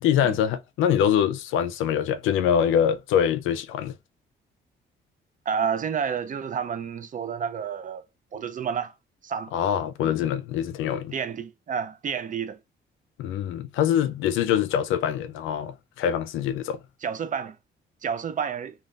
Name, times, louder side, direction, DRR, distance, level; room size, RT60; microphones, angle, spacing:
voice 1, 0.0-3.9 9.5-11.1 13.2-16.8, left 9 dB, 90° left, 0.4 m, -24 dB
voice 2, 5.5-8.0 8.3-8.9 9.2-9.5 10.0-10.1 11.1-12.6 17.0-17.6 18.0-18.7, right 7 dB, 40° right, 0.5 m, -30 dB
2.4 x 2.3 x 3.3 m
cardioid pair, 90°, 20 cm